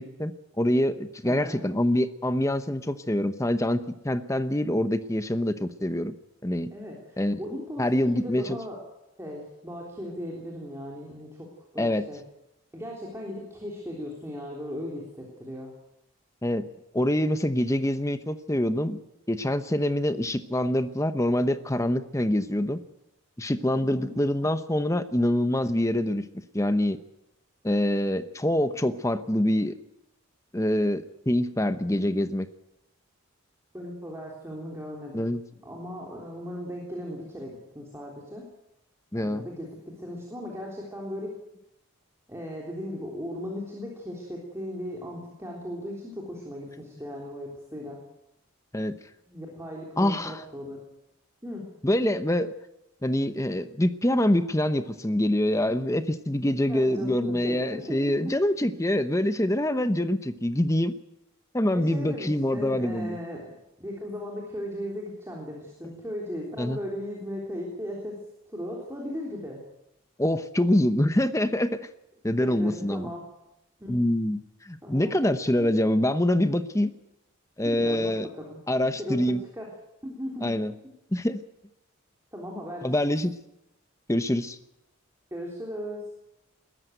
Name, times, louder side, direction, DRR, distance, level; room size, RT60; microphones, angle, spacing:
voice 1, 0.0-6.1 6.4-6.7 7.2-7.4 7.8-8.6 11.8-12.0 16.4-16.6 16.9-19.0 19.3-22.8 23.4-26.2 26.5-27.0 27.6-29.7 30.5-32.5 35.1-35.4 39.1-39.5 48.7-48.9 50.0-50.4 51.8-52.5 53.0-60.9 61.5-63.2 66.6-66.8 70.2-71.8 72.2-73.1 73.9-76.9 77.6-78.3 78.7-79.4 80.4-80.7 81.1-81.4 82.8-83.4 84.1-84.6, left 1 dB, 15° left, 11 dB, 0.8 m, -25 dB
voice 2, 1.2-1.7 6.7-8.8 9.2-12.2 12.7-15.7 23.7-24.1 33.7-35.3 35.6-38.4 39.1-41.3 42.3-48.0 49.3-50.8 51.4-51.6 56.7-58.0 61.7-63.5 63.8-68.2 68.5-69.6 72.4-73.3 73.8-73.9 74.8-75.1 77.6-79.2 79.5-79.7 80.0-80.5 82.3-82.9 85.3-86.0, equal, 15° right, -2 dB, 3.5 m, -37 dB
21.0 x 14.0 x 9.2 m, 0.90 s
head